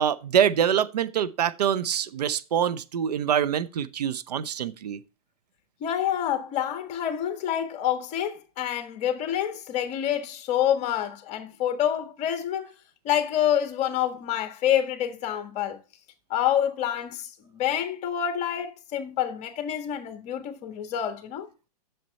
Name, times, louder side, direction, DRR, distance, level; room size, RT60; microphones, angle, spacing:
voice 1, 0.0-5.0, right 9 dB, 80° right, 0.7 m, -25 dB
voice 2, 5.8-12.7 13.0-15.8 16.3-21.5, left 10 dB, 35° left, 1.4 m, -27 dB
7.7 x 6.7 x 4.1 m
hypercardioid pair, 125°, 20 cm